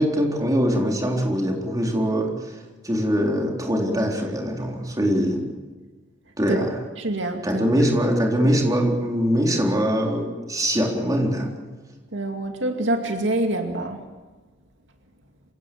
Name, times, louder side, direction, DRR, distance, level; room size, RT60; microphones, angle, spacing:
voice 1, 0.0-5.4 6.4-6.8 7.4-11.5, equal, 20° right, 0 dB, 3.9 m, -22 dB
voice 2, 7.0-7.6 12.1-14.0, right 1 dB, 75° right, 4 dB, 2.3 m, -26 dB
27.5 x 17.0 x 7.8 m, 1.3 s
head